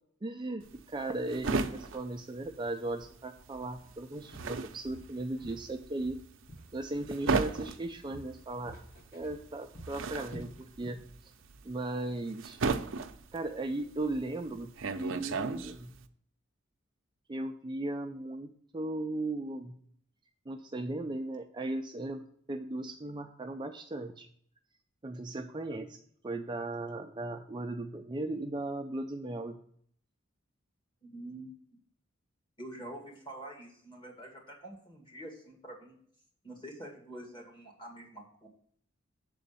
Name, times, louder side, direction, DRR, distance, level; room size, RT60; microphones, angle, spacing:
voice 1, 0.2-6.2 6.7-8.8 9.1-11.0 11.6-12.6 13.3-14.7 15.0-15.9 17.3-19.8 20.5-22.2 22.5-24.3 25.0-25.9 26.2-29.6, right 2 dB, 25° right, 4 dB, 0.5 m, -37 dB
sound 1, 0.6-3.2 3.4-16.0, right 4 dB, 70° right, 0.6 m, -35 dB
Walk footsteps, 3.7-3.9 4.3-5.7 6.0-7.3 7.5-11.1 11.4-11.6 12.1-12.2, equal, 55° left, 2.5 m, -50 dB
voice 2, 31.0-31.5 32.6-36.0 36.4-38.5, right 1 dB, 25° left, 0 dB, 2.3 m, -46 dB
7.6 x 4.1 x 6.9 m, 0.62 s
head